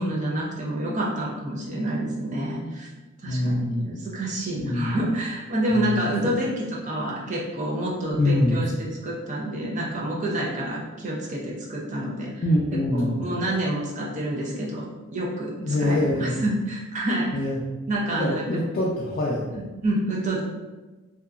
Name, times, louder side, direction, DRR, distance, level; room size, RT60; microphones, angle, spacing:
voice 1, 0.0-2.9 3.2-8.7 9.0-12.3 12.7-14.9 15.1-17.3 17.9-18.4 19.5-20.4, right 1 dB, 35° right, -3 dB, 0.5 m, -28 dB
voice 2, 3.3-3.9 4.6-4.9 5.7-6.0 8.1-8.6 12.4-13.2 15.6-16.4 17.3-17.6 18.2-19.5, left 1 dB, 40° left, -5 dB, 0.3 m, -24 dB
2.8 x 2.2 x 2.4 m, 1.2 s
head